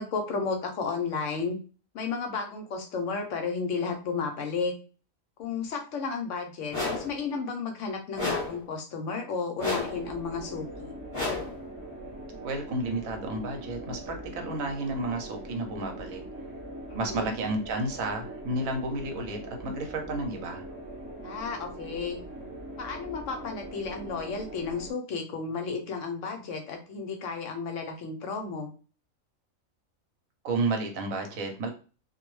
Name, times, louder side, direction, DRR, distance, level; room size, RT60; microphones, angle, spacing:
voice 1, 0.0-1.6 1.9-4.7 5.4-10.9 16.9-17.3 21.2-22.2 22.8-28.7, left 4 dB, 70° left, 4 dB, 0.9 m, -33 dB
sound 1, 6.7-7.2 8.2-8.6 9.6-10.1 11.1-11.6, left 3 dB, 25° left, 1.2 m, -31 dB
sound 2, 9.9-24.9, right 1 dB, 25° right, 0.7 m, -42 dB
voice 2, 12.4-16.2 16.9-20.6 30.4-31.7, right 2 dB, 80° right, 3 dB, 1.1 m, -31 dB
2.4 x 2.0 x 3.1 m, 0.36 s
omnidirectional pair, 1.4 m